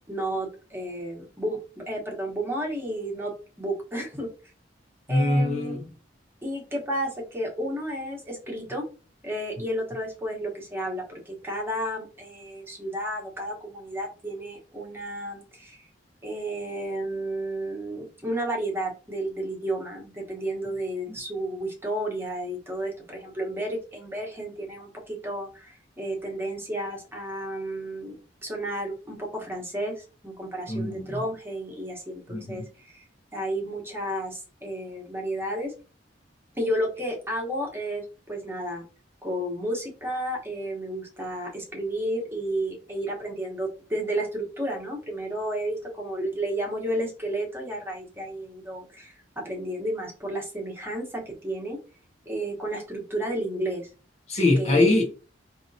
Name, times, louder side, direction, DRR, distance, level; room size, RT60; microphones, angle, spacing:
voice 1, 0.1-3.3 3.6-4.3 5.1-5.8 6.4-8.8 9.2-15.8 16.2-28.1 28.4-33.0 33.3-35.7 36.5-38.8 39.2-51.8 52.2-53.9 54.4-54.8, right 1 dB, 15° right, 1.1 m, -32 dB
voice 2, 5.1-5.9 30.7-31.2 32.3-32.6 54.3-55.0, left 2 dB, 35° left, 0.7 m, -23 dB
4.4 x 2.8 x 2.7 m
head